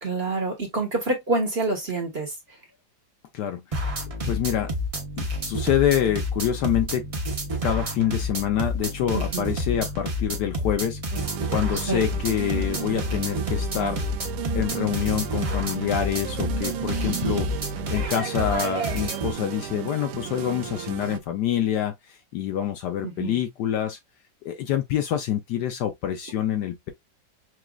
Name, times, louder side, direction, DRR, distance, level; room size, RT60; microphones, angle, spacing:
voice 1, 0.0-2.3 9.1-9.5 11.9-12.0 17.0-17.4 23.0-23.4, right 3 dB, 35° right, 1.3 m, -27 dB
voice 2, 3.3-3.9 4.2-4.7 5.2-7.1 7.6-14.0 14.5-17.5 17.9-21.9 22.3-24.0 24.4-26.9, left 10 dB, 70° left, 1.1 m, -26 dB
sound 1, 3.7-19.3, left 1 dB, 60° right, 0.3 m, -29 dB
sound 2, 11.1-21.2, right 12 dB, 85° right, 1.4 m, -34 dB
6.1 x 2.4 x 2.3 m
omnidirectional pair, 2.1 m